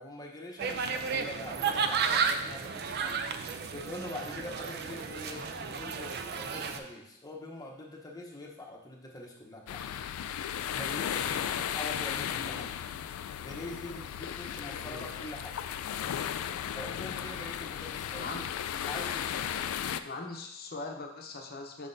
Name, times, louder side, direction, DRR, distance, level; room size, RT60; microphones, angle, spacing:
voice 1, 0.0-3.4 3.7-9.8 10.7-12.6 13.4-15.6 16.7-18.3 18.9-19.5, left 1 dB, 20° left, -1 dB, 0.9 m, -43 dB
sound 1, 0.6-6.8, right 6 dB, 50° right, 0.4 m, -32 dB
sound 2, 9.7-20.0, left 9 dB, 85° left, 0.3 m, -35 dB
voice 2, 14.7-15.0 18.1-18.4 20.0-21.9, left 3 dB, 45° left, 3 dB, 0.7 m, -41 dB
6.5 x 5.7 x 2.6 m, 0.83 s
head